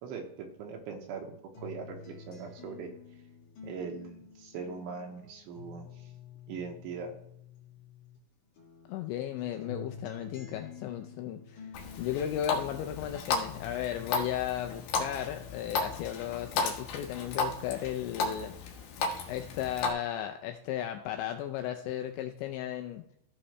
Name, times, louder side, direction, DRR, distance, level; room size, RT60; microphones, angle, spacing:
voice 1, 0.0-2.9 3.6-5.9 6.5-7.1, right 5 dB, 80° right, 2 dB, 3.4 m, -41 dB
sound 1, 1.5-8.2 8.6-16.2 16.6-17.5, left 6 dB, 50° left, 2.9 m, -50 dB
voice 2, 8.9-11.7 12.0-18.5 19.3-23.0, left 11 dB, 80° left, 5 dB, 2.7 m, -35 dB
Water tap faucet, 11.7-19.9, left 4 dB, 65° left, 2.8 m, -34 dB
15.5 x 5.7 x 3.2 m, 0.75 s
omnidirectional pair, 5.7 m